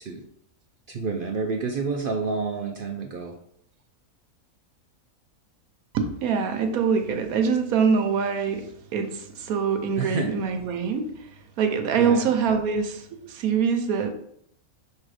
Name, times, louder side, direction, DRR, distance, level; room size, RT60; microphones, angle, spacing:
voice 1, 0.9-3.3 10.0-10.3 12.0-12.3, right 4 dB, 60° right, 2 dB, 0.5 m, -29 dB
voice 2, 5.9-8.7 8.9-11.1 11.6-14.1, right 6 dB, 85° right, 6 dB, 1.2 m, -24 dB
5.3 x 3.8 x 4.8 m, 0.71 s
omnidirectional pair, 1.5 m